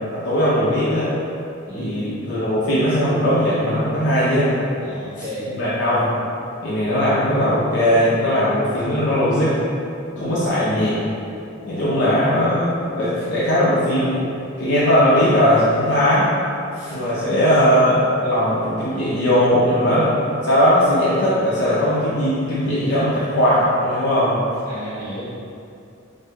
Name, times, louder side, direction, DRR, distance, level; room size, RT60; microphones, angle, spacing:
voice 1, 0.1-1.1 1.7-4.5 5.2-6.1 6.6-9.6 10.2-11.0 11.6-14.2 14.6-16.3 16.8-20.1 20.4-24.3, equal, 55° left, -10 dB, 0.6 m, -19 dB
voice 2, 4.8-5.6 10.1-10.4 11.7-12.1 16.9-17.4 24.7-25.3, equal, 40° right, -12 dB, 1.3 m, -33 dB
4.3 x 2.6 x 2.2 m, 2.6 s
head